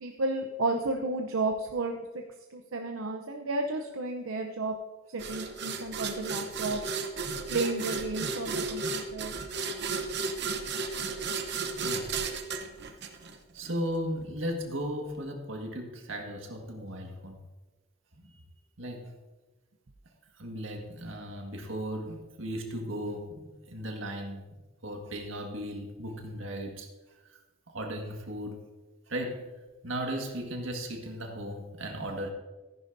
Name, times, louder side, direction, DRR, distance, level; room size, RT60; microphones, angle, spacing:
voice 1, 0.0-2.2 2.5-4.8 5.1-6.8 7.5-9.4, right 2 dB, 90° right, 3 dB, 0.7 m, -32 dB
sound 1, 5.2-13.7, right 4 dB, 55° right, 0.9 m, -34 dB
voice 2, 11.6-12.2 13.1-13.2 13.5-17.4 18.1-18.4 18.8-19.1 20.4-24.4 24.8-26.9 27.2-27.4 27.7-28.6 29.1-29.5 29.8-32.3, equal, 70° right, 2 dB, 1.7 m, -36 dB
14.5 x 10.5 x 2.7 m, 1.2 s
head